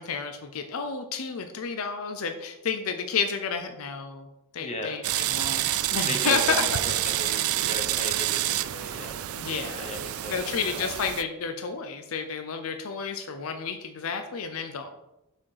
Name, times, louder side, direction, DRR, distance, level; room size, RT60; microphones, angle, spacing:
voice 1, 0.0-4.3 4.5-6.7 9.4-9.9 10.3-14.9, left 5 dB, 75° left, 7 dB, 0.5 m, -31 dB
voice 2, 4.6-5.0 6.0-10.9, left 2 dB, 30° left, 3 dB, 1.0 m, -37 dB
sound 1, 5.0-11.2, right 13 dB, 75° right, 0.3 m, -28 dB
6.1 x 4.4 x 4.6 m, 0.93 s
head